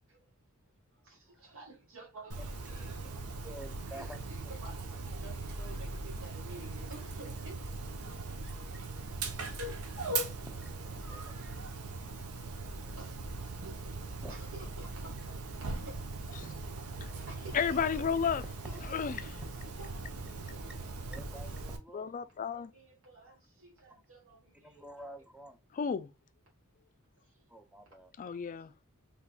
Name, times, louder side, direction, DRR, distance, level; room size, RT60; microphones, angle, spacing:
voice 1, 0.9-3.1 3.9-8.9 11.1-11.6 12.9-13.4 13.6-13.9 14.3-16.0 16.2-16.6 17.1-18.0 18.6-19.0 22.4-24.8 27.2-27.5 28.6-28.9, right 2 dB, 65° right, 1.7 m, -52 dB
Dog, 2.3-21.8, right 3 dB, 90° right, 0.9 m, -40 dB
voice 2, 3.4-4.2 10.6-11.3 14.2-14.3 21.1-22.1 24.6-25.6 27.5-28.1, right 1 dB, 5° right, 0.6 m, -48 dB
voice 3, 17.5-18.4 18.9-19.2 21.9-22.7 25.7-26.1 28.2-28.7, left 6 dB, 35° left, 0.3 m, -32 dB
3.5 x 3.4 x 2.3 m
head